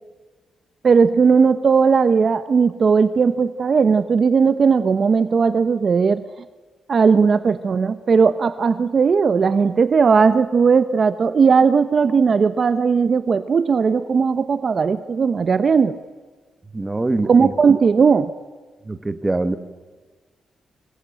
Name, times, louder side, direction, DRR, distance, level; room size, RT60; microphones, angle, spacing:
voice 1, 0.8-6.3 6.9-16.0 17.3-18.3, right 5 dB, 45° right, 12 dB, 0.9 m, -17 dB
voice 2, 16.7-17.5 18.8-19.6, right 2 dB, 20° right, 10 dB, 1.6 m, -23 dB
25.5 x 22.0 x 9.2 m, 1.4 s
cardioid pair, 115°, 0 cm